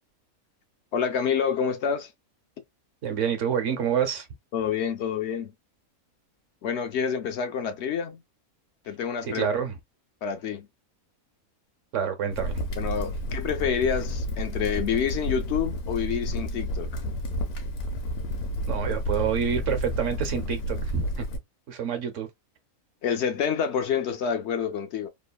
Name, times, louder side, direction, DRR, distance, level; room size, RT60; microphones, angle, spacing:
voice 1, 0.9-2.1 4.5-5.5 6.6-8.2 8.9-9.5 10.2-10.7 12.8-17.0 23.0-25.1, left 7 dB, 65° left, 0.7 m, -28 dB
voice 2, 3.0-4.3 9.3-9.8 11.9-12.7 18.7-21.2 21.7-22.3, right 8 dB, 60° right, 1.1 m, -27 dB
Crackle, 12.3-21.4, equal, 85° left, 1.3 m, -31 dB
3.0 x 2.1 x 2.3 m
omnidirectional pair, 1.5 m